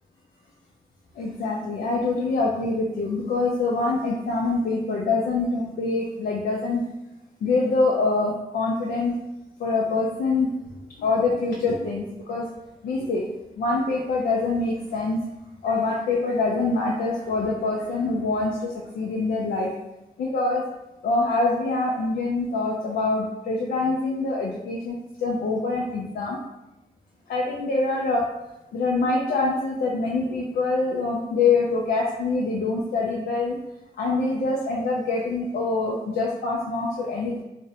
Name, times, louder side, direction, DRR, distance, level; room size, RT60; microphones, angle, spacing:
voice 1, 1.2-6.8 7.4-9.2 9.6-10.5 11.0-12.5 12.8-13.3 13.6-15.2 15.6-19.7 20.2-20.6 21.0-26.4 27.3-28.3 28.7-33.6 34.0-37.4, left 3 dB, 75° left, -2 dB, 0.4 m, -25 dB
2.5 x 2.0 x 2.8 m, 0.94 s
cardioid pair, 60°, 16 cm